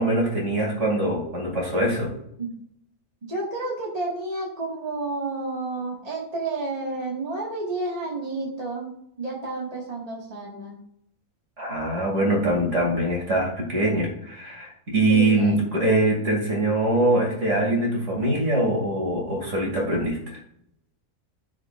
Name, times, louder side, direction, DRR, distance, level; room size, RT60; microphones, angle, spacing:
voice 1, 0.0-2.1 11.6-20.4, right 1 dB, 55° right, -1 dB, 2.8 m, -23 dB
voice 2, 3.2-10.8 15.1-15.7, right 2 dB, 25° right, -3 dB, 1.8 m, -31 dB
15.0 x 5.1 x 2.5 m, 0.73 s
omnidirectional pair, 1.6 m